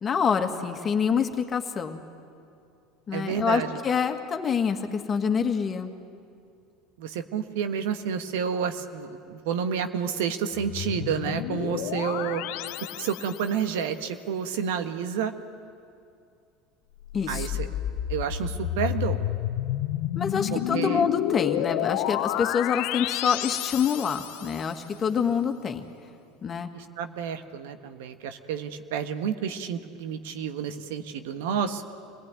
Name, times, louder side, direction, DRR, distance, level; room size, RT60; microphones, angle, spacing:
voice 1, 0.0-2.0 3.1-5.9 17.1-17.5 20.2-25.8 26.4-26.7, left 6 dB, 35° left, 5 dB, 2.0 m, -26 dB
voice 2, 3.1-3.8 7.0-12.4 13.0-15.3 17.3-17.7 18.1-19.3 20.5-21.1 25.2-25.3 26.7-31.8, right 7 dB, 75° right, 8 dB, 1.4 m, -30 dB
sound 1, 10.5-13.7 17.0-24.7, left 13 dB, 65° left, 0.8 m, -30 dB
26.0 x 18.5 x 9.4 m, 2.5 s
hypercardioid pair, 80°, 0 cm